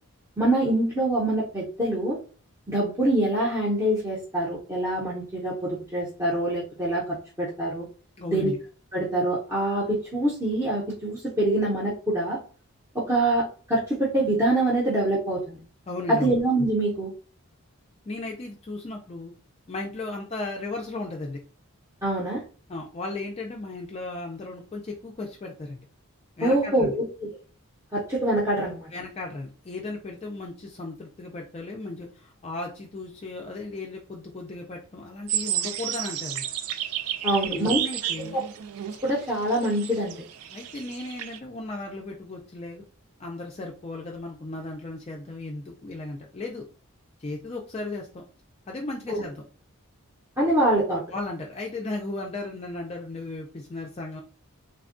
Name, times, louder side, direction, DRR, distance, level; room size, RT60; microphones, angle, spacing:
voice 1, 0.4-2.2 2.7-7.9 8.3-8.5 8.9-12.4 12.9-15.6 16.1-17.1 22.0-22.4 26.4-27.3 27.9-28.9 37.2-37.8 39.0-40.2 49.1-49.2 50.4-51.0, right 1 dB, 15° right, -8 dB, 0.6 m, -25 dB
voice 2, 8.2-8.6 15.9-16.4 18.1-19.3 19.7-21.4 22.7-25.8 26.4-26.9 28.9-36.5 37.4-38.4 40.5-42.8 43.2-46.7 47.2-48.2 48.7-49.4 51.1-54.2, left 2 dB, 30° left, 0 dB, 0.3 m, -35 dB
sound 1, 35.3-41.4, right 10 dB, 80° right, 0.3 m, -32 dB
3.4 x 2.2 x 2.5 m, 0.39 s
head